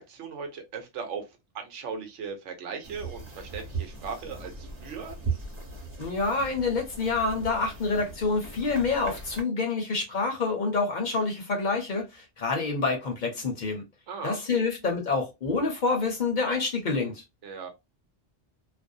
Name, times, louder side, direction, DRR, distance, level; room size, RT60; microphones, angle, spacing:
voice 1, 0.0-5.2 14.1-14.6 17.4-17.7, right 5 dB, 90° right, 1.1 m, -38 dB
sound 1, 2.8-9.4, right 4 dB, 35° right, 1.1 m, -38 dB
voice 2, 6.0-13.8 14.2-17.2, left 4 dB, 50° left, 0.7 m, -27 dB
2.5 x 2.0 x 2.5 m
omnidirectional pair, 1.2 m